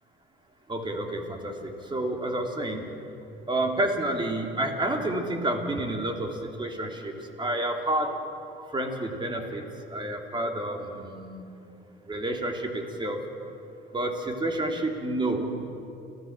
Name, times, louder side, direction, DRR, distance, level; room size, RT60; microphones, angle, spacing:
voice 1, 0.7-2.9 3.5-7.1 7.4-8.2 8.7-11.4 12.1-13.2 13.9-15.5, right 1 dB, 25° right, 3 dB, 3.1 m, -29 dB
29.5 x 14.5 x 7.5 m, 2.7 s
cardioid pair, 105°, 20 cm